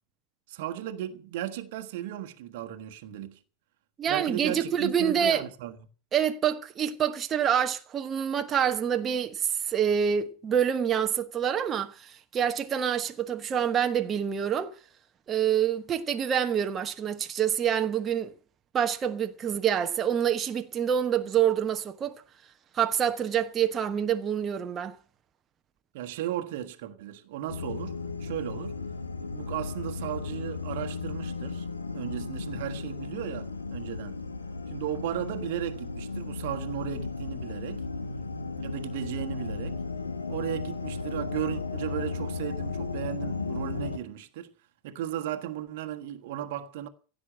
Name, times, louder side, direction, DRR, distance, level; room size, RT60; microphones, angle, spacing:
voice 1, 0.5-3.4 4.1-5.7 25.9-28.8 29.2-31.7 31.9-34.2 34.7-37.8 38.6-39.8 40.3-44.5 44.8-46.9, right 11 dB, 50° right, 1.5 m, -35 dB
voice 2, 4.0-5.4 6.1-14.7 15.3-18.3 18.7-22.2 22.7-24.9, right 8 dB, 25° right, 1.1 m, -27 dB
sound 1, 27.5-44.0, left 4 dB, 75° left, 1.3 m, -35 dB
16.0 x 7.9 x 8.6 m
figure-of-eight pair, 90°, 0 cm